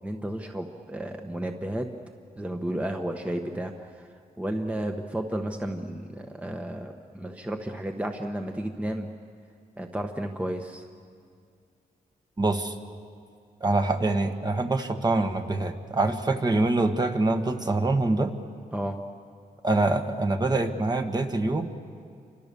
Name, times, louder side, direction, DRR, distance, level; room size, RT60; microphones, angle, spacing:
voice 1, 0.0-1.9 2.4-9.2 9.8-10.8 18.7-19.0, right 1 dB, 10° right, 4 dB, 1.2 m, -32 dB
voice 2, 12.4-12.7 13.6-18.3 19.6-21.7, right 2 dB, 25° right, 5 dB, 1.6 m, -25 dB
29.5 x 25.5 x 7.0 m, 2.3 s
wide cardioid pair, 110°, 15 cm